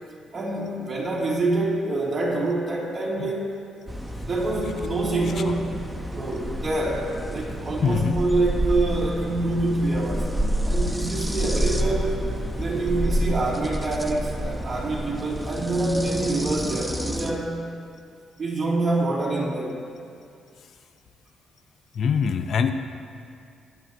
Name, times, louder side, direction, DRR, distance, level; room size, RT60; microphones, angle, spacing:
voice 1, 0.3-3.4 4.2-5.7 6.1-10.3 10.6-12.3 12.5-17.6 18.4-19.8, right 2 dB, 35° right, -5 dB, 2.9 m, -26 dB
sound 1, 3.9-17.4, right 1 dB, 5° right, 0.9 m, -29 dB
voice 2, 7.8-8.1 21.9-22.7, left 6 dB, 60° left, 8 dB, 0.7 m, -23 dB
20.5 x 9.4 x 2.9 m, 2.4 s
cardioid pair, 90°, 0 cm